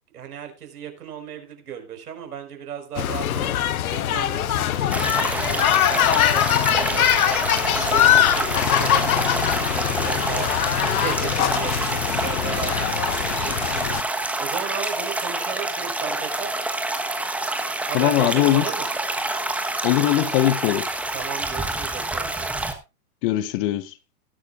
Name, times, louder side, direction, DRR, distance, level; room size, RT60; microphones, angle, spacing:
voice 1, 0.1-7.2 7.7-16.6 17.9-18.9 21.1-22.6, right 8 dB, 80° right, 5.1 m, -36 dB
sound 1, 3.0-14.0, left 11 dB, 65° left, 1.2 m, -22 dB
sound 2, 4.9-22.7, right 2 dB, 5° right, 1.2 m, -27 dB
voice 2, 17.9-18.7 19.8-20.9 23.2-23.9, left 14 dB, 35° left, 1.0 m, -20 dB
19.0 x 10.5 x 2.5 m
hypercardioid pair, 135°, 45 cm